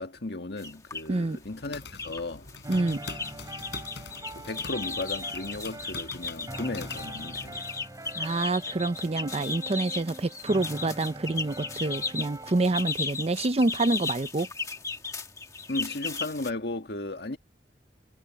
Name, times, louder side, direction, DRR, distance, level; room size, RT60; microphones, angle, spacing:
voice 1, 0.0-2.5 4.4-7.7 15.7-17.4, left 2 dB, 65° left, 1.9 m, -35 dB
sound 1, 0.6-1.1 1.6-2.2 2.5-16.5, left 4 dB, 20° left, 1.6 m, -36 dB
voice 2, 1.1-1.4 2.7-3.0 8.1-14.5, right 2 dB, 35° right, 0.6 m, -27 dB
sound 2, 1.4-7.6, left 4 dB, 80° left, 3.9 m, -45 dB
sound 3, 2.6-12.9, right 1 dB, 20° right, 4.6 m, -44 dB
head